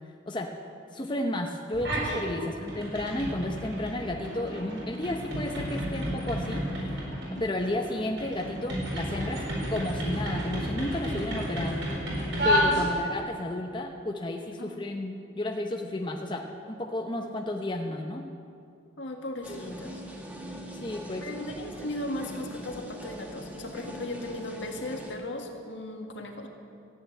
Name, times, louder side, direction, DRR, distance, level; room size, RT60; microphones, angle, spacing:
voice 1, 0.9-7.0 7.4-9.4 9.7-11.8 12.4-18.2 19.5-19.9 20.8-21.3, left 1 dB, 25° left, 2 dB, 0.8 m, -32 dB
sound 1, 1.7-2.2 2.6-13.2, equal, 65° right, 4.5 m, -31 dB
voice 2, 19.0-20.0 21.2-26.5, left 1 dB, 65° left, 2 dB, 1.7 m, -37 dB
sound 2, 19.4-25.2, equal, 10° right, 1.4 m, -42 dB
14.5 x 8.7 x 9.0 m, 2.4 s
head